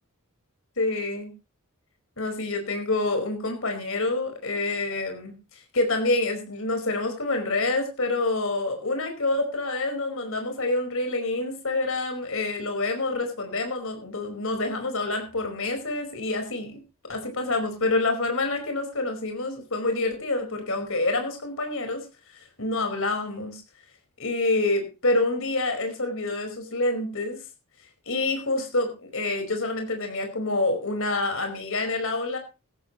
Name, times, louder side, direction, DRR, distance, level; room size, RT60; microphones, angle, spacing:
voice 1, 0.8-1.3 2.2-5.3 5.7-16.8 17.1-22.0 22.6-23.6 24.2-27.4 28.1-32.4, left 2 dB, 60° left, 5 dB, 4.8 m, -27 dB
17.5 x 14.0 x 3.0 m, 0.30 s
head